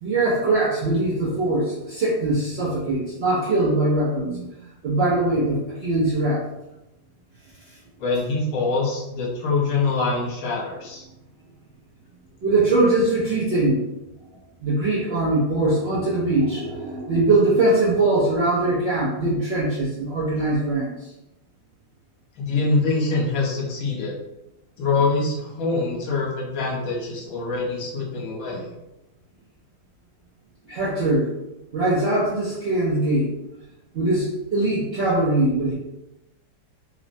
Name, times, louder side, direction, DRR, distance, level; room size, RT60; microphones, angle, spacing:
voice 1, 0.0-4.5 4.8-6.4 12.4-13.8 14.6-21.1 30.7-31.3 31.7-33.3 33.9-35.7, right 2 dB, 75° right, -8 dB, 0.5 m, -22 dB
voice 2, 8.0-11.0 22.4-24.1 24.8-28.7, left 3 dB, 60° left, -4 dB, 1.2 m, -24 dB
3.0 x 2.1 x 2.5 m, 0.94 s
omnidirectional pair, 1.8 m